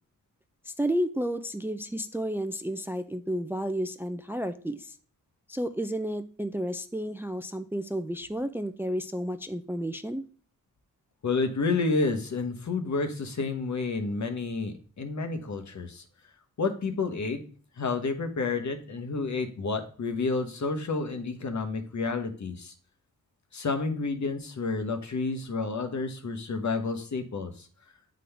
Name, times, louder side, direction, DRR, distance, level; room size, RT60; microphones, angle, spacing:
voice 1, 0.7-4.9 5.5-10.2, equal, 5° right, 10 dB, 0.4 m, -31 dB
voice 2, 11.2-16.0 16.6-17.4 17.8-22.7 23.5-27.7, left 4 dB, 60° left, 6 dB, 1.1 m, -30 dB
8.3 x 3.8 x 3.3 m, 0.41 s
cardioid pair, 65°, 33 cm